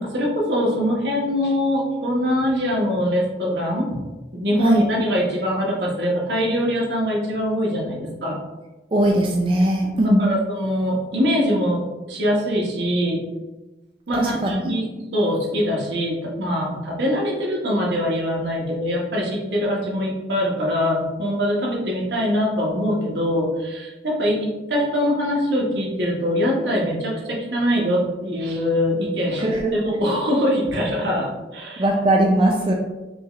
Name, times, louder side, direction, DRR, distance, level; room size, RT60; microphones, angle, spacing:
voice 1, 0.0-4.0 4.3-8.4 10.0-11.8 12.1-13.2 14.1-31.9, equal, 75° right, -3 dB, 1.1 m, -23 dB
voice 2, 8.9-10.3 14.1-14.6 29.4-29.9 31.8-32.7, right 1 dB, 30° right, 0 dB, 0.4 m, -19 dB
5.2 x 2.4 x 3.0 m, 1.1 s
head